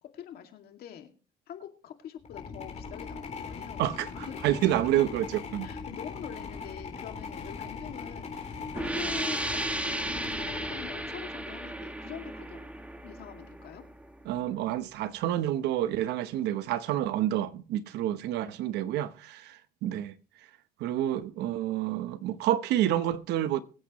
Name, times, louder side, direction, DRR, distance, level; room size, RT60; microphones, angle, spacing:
voice 1, 0.0-1.1 1.5-3.8 4.1-5.0 5.6-12.7 13.0-13.8 18.4-18.6, left 9 dB, 65° left, 2.3 m, -45 dB
sound 1, 2.2-11.6, left 5 dB, 40° left, 3.6 m, -40 dB
voice 2, 3.8-5.3 5.5-5.7 14.3-20.1 20.8-23.6, right 12 dB, 85° right, 0.9 m, -29 dB
sound 2, 8.7-14.2, right 1 dB, 10° right, 1.3 m, -35 dB
23.0 x 8.4 x 3.1 m
cardioid pair, 110°, 17 cm